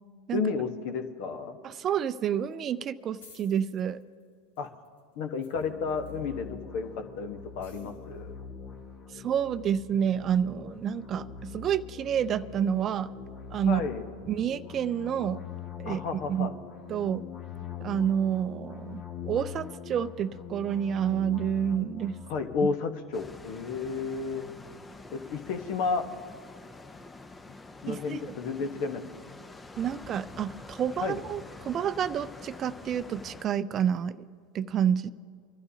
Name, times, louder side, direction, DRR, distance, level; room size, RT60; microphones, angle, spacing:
voice 1, 0.3-1.6 4.6-4.7 5.2-8.3 13.7-14.0 15.8-16.5 22.3-24.5 25.1-26.1 27.8-29.0 31.0-31.2, left 5 dB, 60° left, 6 dB, 1.3 m, -32 dB
voice 2, 1.6-4.0 9.1-13.1 13.5-13.8 14.3-15.4 15.8-16.0 16.3-16.5 16.9-17.2 17.8-22.2 27.9-28.2 29.8-34.2 34.5-35.1, right 9 dB, 35° right, 14 dB, 0.5 m, -29 dB
sound 1, 1.9-2.6 2.9-3.0 3.2-6.3 7.6-8.2, left 4 dB, 75° left, 1.7 m, -57 dB
sound 2, 5.5-22.6, left 7 dB, 45° left, 1.6 m, -43 dB
sound 3, 23.1-33.5, left 3 dB, 15° left, 0.7 m, -47 dB
26.0 x 12.0 x 2.9 m, 2.3 s
hypercardioid pair, 95°, 0 cm